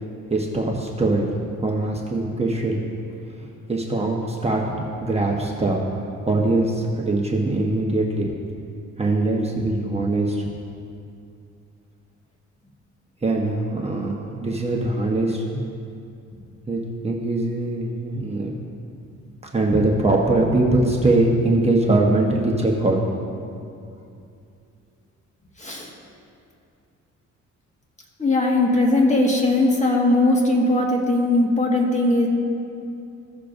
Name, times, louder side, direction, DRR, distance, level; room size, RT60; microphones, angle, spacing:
voice 1, 0.3-1.3 1.6-2.8 3.7-5.8 6.2-8.3 9.0-10.5 13.2-15.6 16.7-18.6 19.5-23.0, right 2 dB, 20° right, -2 dB, 1.1 m, -22 dB
voice 2, 25.6-25.9 28.2-32.3, left 2 dB, 25° left, -1 dB, 1.7 m, -19 dB
16.0 x 6.6 x 2.6 m, 2.5 s
cardioid pair, 90°, 30 cm